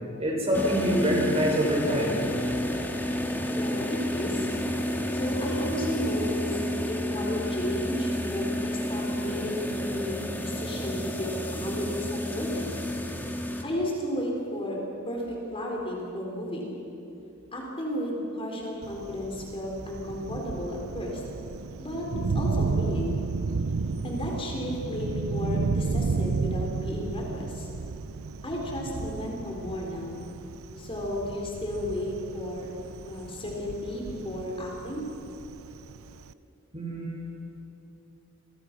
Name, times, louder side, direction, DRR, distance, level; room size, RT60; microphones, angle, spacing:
voice 1, 0.2-2.3 36.7-37.3, equal, 30° right, -1 dB, 5.9 m, -25 dB
sound 1, 0.5-13.6, left 1 dB, 10° left, 1.8 m, -30 dB
voice 2, 3.5-4.5 5.1-6.6 6.9-12.8 13.6-14.8 15.0-16.7 17.5-21.2 21.8-22.1 22.3-23.2 24.0-27.7 28.4-30.2 30.8-32.7 33.1-35.1, left 1 dB, 25° left, -1 dB, 4.2 m, -33 dB
Thunder, 18.8-36.3, right 4 dB, 70° right, 0.6 m, -33 dB
28.5 x 23.0 x 6.1 m, 2.9 s
head